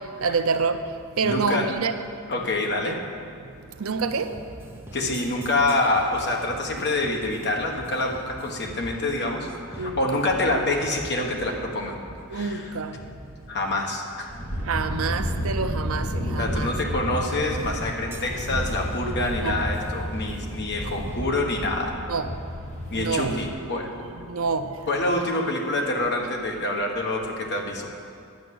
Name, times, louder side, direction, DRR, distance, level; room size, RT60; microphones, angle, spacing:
voice 1, 0.2-1.9 2.8-2.9 3.4-4.4 9.8-10.2 12.3-13.0 14.6-16.8 19.4-19.6 22.1-22.3 22.8-23.3 24.3-24.8, right 4 dB, 70° right, 0.6 m, -27 dB
voice 2, 1.2-1.7 2.3-3.0 4.9-12.0 12.3-12.7 13.5-14.3 16.4-22.0 22.9-23.9 24.9-27.9, left 2 dB, 50° left, 1.4 m, -26 dB
sound 1, 4.1-21.4, right 1 dB, 10° right, 1.0 m, -44 dB
sound 2, 14.3-23.5, equal, 30° left, 1.3 m, -31 dB
10.5 x 7.1 x 7.8 m
head